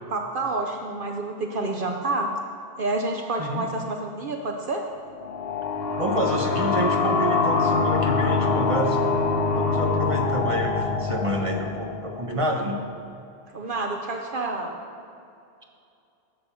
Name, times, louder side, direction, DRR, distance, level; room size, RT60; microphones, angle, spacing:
voice 1, 0.1-2.3 2.8-4.9 13.5-14.8, right 2 dB, 60° right, 2 dB, 0.9 m, -28 dB
voice 2, 3.4-3.7 6.0-9.0 9.5-12.8, right 1 dB, 30° right, 2 dB, 1.1 m, -28 dB
sound 1, 5.2-12.6, left 4 dB, 70° left, 0.9 m, -24 dB
11.5 x 5.5 x 7.0 m, 2.5 s
omnidirectional pair, 1.1 m